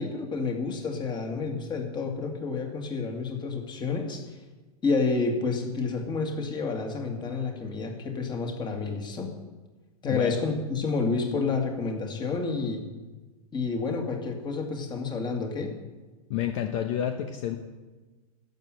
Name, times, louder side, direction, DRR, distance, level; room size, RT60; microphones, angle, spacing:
voice 1, 0.0-4.4 4.8-9.3 10.0-12.8 13.5-15.7, left 4 dB, 20° left, 3 dB, 2.2 m, -29 dB
voice 2, 16.3-17.6, left 10 dB, 55° left, 6 dB, 1.0 m, -29 dB
12.0 x 7.2 x 7.8 m, 1.3 s
hypercardioid pair, 100°, 20 cm